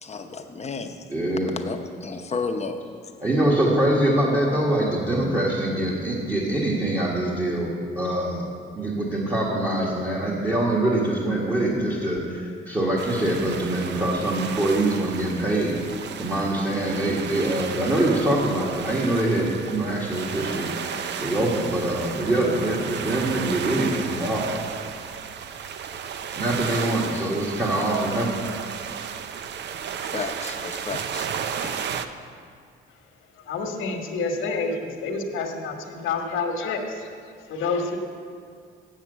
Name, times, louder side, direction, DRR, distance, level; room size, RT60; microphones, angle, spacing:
voice 1, 0.0-1.1 1.5-2.8 30.0-31.3 31.6-31.9, left 4 dB, 35° left, 6 dB, 0.8 m, -32 dB
voice 2, 1.1-1.5 3.2-7.7 8.0-8.4 8.7-15.8 16.2-20.7 21.2-24.5 26.4-28.4, right 1 dB, 20° right, -4 dB, 1.6 m, -24 dB
sound 1, 13.0-32.1, right 7 dB, 60° right, 0.6 m, -33 dB
voice 3, 33.4-37.1 37.5-38.0, left 4 dB, 85° left, 4 dB, 1.2 m, -28 dB
7.4 x 7.3 x 8.0 m, 2.2 s
cardioid pair, 90°, 20 cm